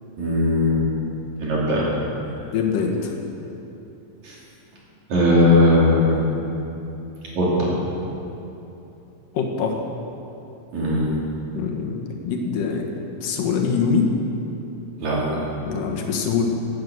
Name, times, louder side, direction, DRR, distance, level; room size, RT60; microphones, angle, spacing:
voice 1, 0.2-0.8 1.4-1.9 4.2-4.4 5.1-6.3 7.3-7.7 10.7-11.1 15.0-15.3, left 1 dB, 60° right, -5 dB, 4.0 m, -18 dB
voice 2, 2.5-3.1 9.3-9.8 11.5-13.0 13.2-14.1 15.6-16.5, left 6 dB, 80° left, 1 dB, 3.0 m, -23 dB
12.0 x 10.0 x 8.0 m, 2.9 s
omnidirectional pair, 3.8 m